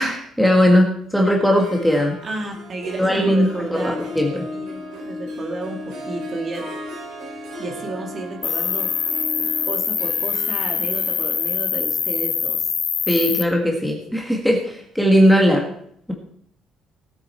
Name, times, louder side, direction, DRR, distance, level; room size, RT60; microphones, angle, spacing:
voice 1, 0.0-2.2 3.0-4.5 13.1-15.6, equal, ahead, 0 dB, 1.6 m, -18 dB
Harp, 1.4-14.3, left 1 dB, 65° right, 3.1 m, -36 dB
voice 2, 2.2-3.9 4.3-6.7 7.6-8.9 9.4-12.7, right 2 dB, 30° right, 2 dB, 2.3 m, -32 dB
Cricket, 8.4-13.4, left 6 dB, 35° left, 0.6 m, -24 dB
17.5 x 8.8 x 4.4 m, 0.68 s
cardioid pair, 160°, 0 cm